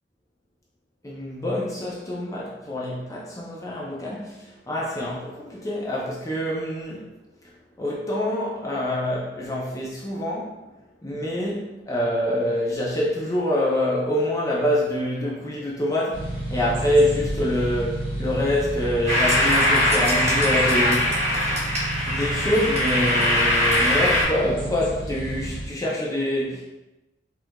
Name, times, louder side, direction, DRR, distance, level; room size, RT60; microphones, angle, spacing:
voice 1, 1.0-7.1 7.8-10.5 11.0-21.1 22.1-26.6, left 1 dB, 20° left, -5 dB, 0.4 m, -25 dB
sound 1, 16.1-25.7, right 1 dB, 15° right, 1.1 m, -31 dB
sound 2, 19.1-24.2, left 1 dB, 40° right, 1.0 m, -21 dB
4.5 x 2.4 x 2.3 m, 1.0 s
head